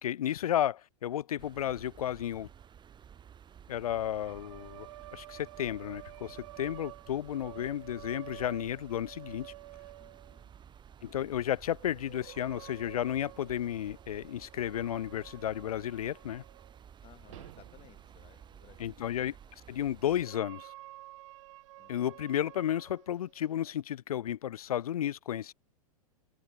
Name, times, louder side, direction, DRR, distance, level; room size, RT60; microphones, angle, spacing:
voice 1, 0.0-2.5 3.7-9.5 11.0-16.4 18.8-19.3 19.7-20.7 21.9-25.5, left 11 dB, 75° left, 0.5 m, -33 dB
sound 1, 1.4-20.2, right 8 dB, 25° right, 6.2 m, -54 dB
sound 2, 3.8-10.6 11.7-16.8 17.2-23.7, right 17 dB, 55° right, 0.8 m, -51 dB
voice 2, 10.0-10.5 17.0-19.3 19.7-19.8 21.8-22.2, left 13 dB, 30° left, 2.6 m, -60 dB
figure-of-eight pair, 100°, 19 cm